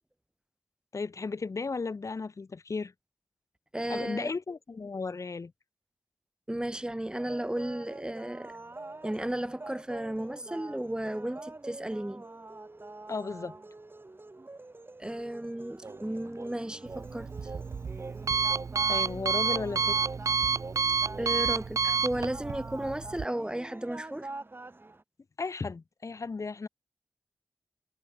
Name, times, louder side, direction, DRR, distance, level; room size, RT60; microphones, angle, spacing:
voice 1, 0.9-2.9 3.9-5.5 13.1-13.6 18.9-20.0 25.4-26.7, left 4 dB, 70° left, 3.3 m, -35 dB
voice 2, 3.7-4.3 6.5-8.5 9.0-12.2 15.0-17.5 21.2-24.3, right 1 dB, 15° right, 1.4 m, -34 dB
sound 1, 7.1-25.0, right 2 dB, 40° right, 5.8 m, -46 dB
sound 2, 15.8-21.5, right 3 dB, 60° right, 4.6 m, -46 dB
Alarm, 16.9-23.3, right 5 dB, 75° right, 0.5 m, -29 dB
cardioid pair, 50°, 6 cm